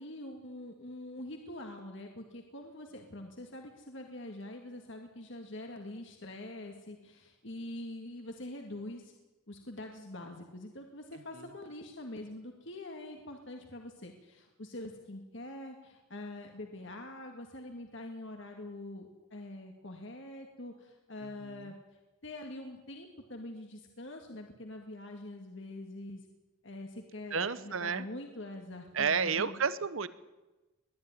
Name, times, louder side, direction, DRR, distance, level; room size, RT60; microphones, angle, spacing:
voice 1, 0.0-9.1 9.5-21.7 22.2-26.2 26.6-29.5, left 1 dB, 55° left, 3 dB, 2.0 m, -44 dB
voice 2, 27.3-28.1 28.9-30.1, right 6 dB, 65° right, 15 dB, 1.0 m, -31 dB
21.0 x 13.0 x 9.6 m, 1.1 s
head